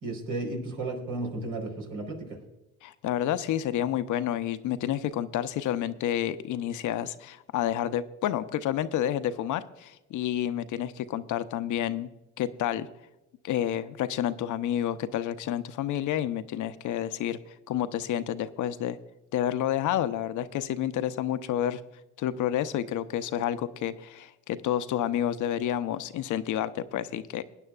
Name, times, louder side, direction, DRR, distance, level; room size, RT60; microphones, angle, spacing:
voice 1, 0.0-2.4, right 2 dB, 65° right, 1 dB, 4.2 m, -34 dB
voice 2, 2.8-12.1 12.4-12.9 13.4-17.4 17.7-19.0 19.3-21.8 22.2-27.4, left 11 dB, 60° left, 12 dB, 0.8 m, -29 dB
20.5 x 9.9 x 2.4 m, 1.0 s
supercardioid pair, 70°, 35 cm